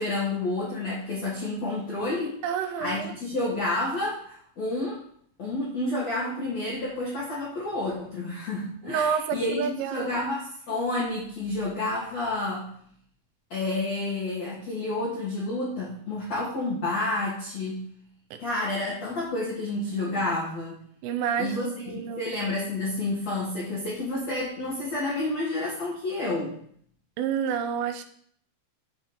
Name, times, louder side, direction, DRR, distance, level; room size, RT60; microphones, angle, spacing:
voice 1, 0.0-2.4 2.8-5.0 5.4-12.7 13.5-17.8 18.4-20.8 21.4-21.7 21.9-26.5, left 2 dB, 65° left, -7 dB, 1.6 m, -30 dB
voice 2, 2.4-3.1 8.8-10.2 18.3-18.4 21.0-22.3 27.2-28.0, right 7 dB, 85° right, 8 dB, 3.2 m, -29 dB
7.2 x 6.7 x 4.3 m, 0.62 s
omnidirectional pair, 5.8 m